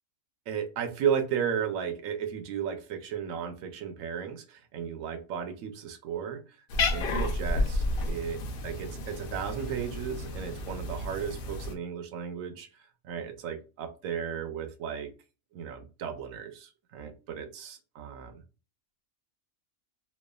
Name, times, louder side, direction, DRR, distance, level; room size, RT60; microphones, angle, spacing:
voice 1, 0.5-6.4 6.9-12.7 13.0-15.1 15.5-18.3, right 8 dB, 85° right, 6 dB, 1.0 m, -34 dB
Cat, 6.7-11.8, left 2 dB, 65° left, 0.6 m, -31 dB
3.2 x 2.2 x 2.2 m, 0.32 s
omnidirectional pair, 1.3 m